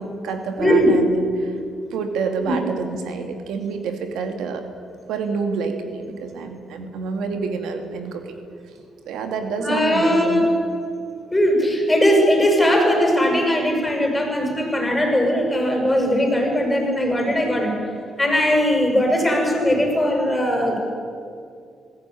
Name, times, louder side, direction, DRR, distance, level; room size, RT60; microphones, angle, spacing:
voice 1, 0.0-1.6 1.9-4.7 5.1-8.3 9.1-10.5, right 4 dB, 85° right, 6 dB, 2.2 m, -28 dB
voice 2, 0.6-0.9 2.4-2.6 9.6-10.5 11.3-17.8 18.2-20.8, equal, 10° left, 1 dB, 7.5 m, -19 dB
20.0 x 16.0 x 9.9 m, 2.3 s
cardioid pair, 90°, 0 cm